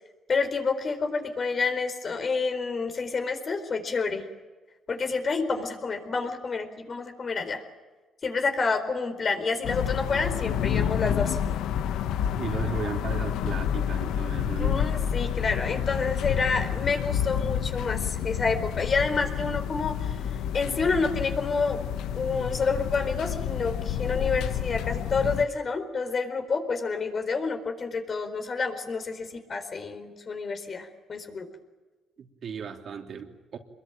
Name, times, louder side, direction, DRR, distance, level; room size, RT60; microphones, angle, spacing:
voice 1, 0.3-4.2 4.9-7.6 8.2-11.4 14.6-20.2 20.5-21.8 22.1-31.5, left 4 dB, 45° left, 7 dB, 4.4 m, -28 dB
sound 1, 9.6-25.5, left 9 dB, 90° left, 1.2 m, -29 dB
voice 2, 12.3-14.8 32.2-33.6, right 6 dB, 60° right, 3 dB, 3.2 m, -35 dB
26.0 x 22.0 x 9.2 m, 1.2 s
cardioid pair, 90°, 0 cm